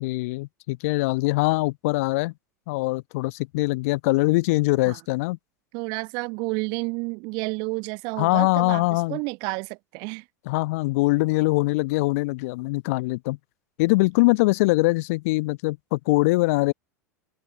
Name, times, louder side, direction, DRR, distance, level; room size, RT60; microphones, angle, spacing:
voice 1, 0.0-2.3 2.7-5.4 8.2-9.2 10.5-13.4 13.8-16.7, left 23 dB, 55° left, 0.9 m, -22 dB
voice 2, 5.7-10.2, right 30 dB, 50° right, 1.1 m, -30 dB
figure-of-eight pair, 80°, 9 cm